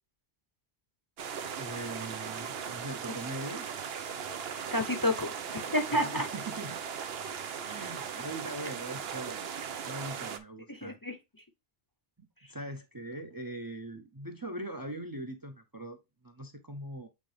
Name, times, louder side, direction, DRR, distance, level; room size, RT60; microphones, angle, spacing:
sound 1, 1.2-10.4, right 7 dB, 75° right, 1.0 m, -38 dB
voice 1, 1.5-3.7 5.9-6.8 7.6-9.5 9.9-11.0 12.2-17.1, right 1 dB, 25° right, 0.6 m, -41 dB
voice 2, 4.7-6.3 10.7-11.2, left 1 dB, 25° left, 0.7 m, -30 dB
8.2 x 3.6 x 3.3 m
omnidirectional pair, 1.0 m